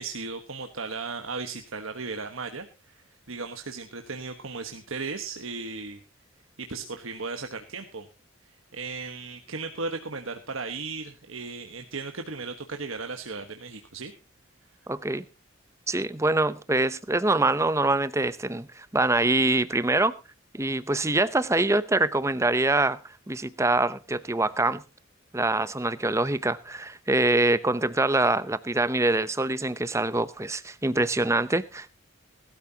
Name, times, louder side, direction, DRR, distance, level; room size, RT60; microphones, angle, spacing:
voice 1, 0.0-6.0 6.6-8.1 8.4-14.1, right 4 dB, 75° right, 1.3 m, -36 dB
voice 2, 14.9-15.2 15.9-20.1 20.5-24.8 25.3-31.9, right 2 dB, 15° right, 0.7 m, -24 dB
19.0 x 13.0 x 2.9 m
head